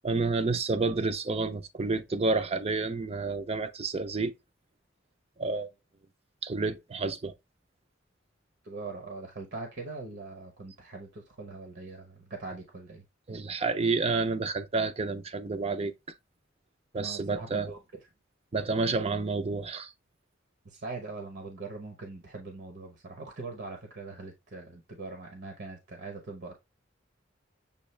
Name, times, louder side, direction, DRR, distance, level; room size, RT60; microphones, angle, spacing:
voice 1, 0.0-4.3 5.4-5.7 6.4-7.3 13.3-15.9 16.9-17.7 18.5-19.9, right 3 dB, 30° right, 0.5 m, -29 dB
voice 2, 8.6-13.0 17.0-18.1 20.6-26.5, right 3 dB, 60° right, 0.9 m, -42 dB
7.0 x 2.4 x 3.2 m
head